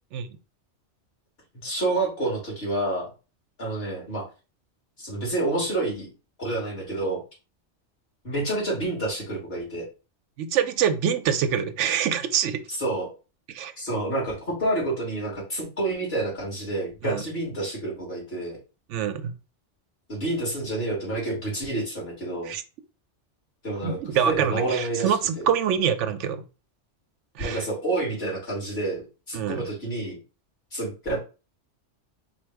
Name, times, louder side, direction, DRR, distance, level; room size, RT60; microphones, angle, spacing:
voice 1, 1.6-3.1 3.6-4.2 5.0-6.1 6.4-7.2 8.2-9.9 12.8-13.1 13.8-18.6 20.1-22.5 23.6-24.0 24.2-25.5 27.4-29.0 29.3-30.2 30.7-31.2, right 2 dB, 55° left, 2.6 m, -28 dB
voice 2, 10.4-12.6 13.5-13.7 17.0-17.2 18.9-19.3 22.5-22.6 23.8-26.4 27.4-27.6 29.3-29.6, right 8 dB, 85° right, 0.9 m, -25 dB
4.3 x 2.5 x 4.5 m
omnidirectional pair, 1.2 m